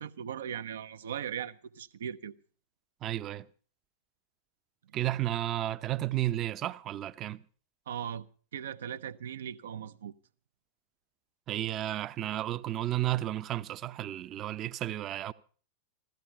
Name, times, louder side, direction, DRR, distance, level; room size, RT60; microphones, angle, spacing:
voice 1, 0.0-2.3 7.9-8.3 8.5-10.1, right 9 dB, 65° right, 0.8 m, -38 dB
voice 2, 3.0-3.4 4.9-7.4 11.5-15.3, right 14 dB, 30° right, 0.8 m, -32 dB
16.0 x 13.5 x 5.9 m
figure-of-eight pair, 90°, 0 cm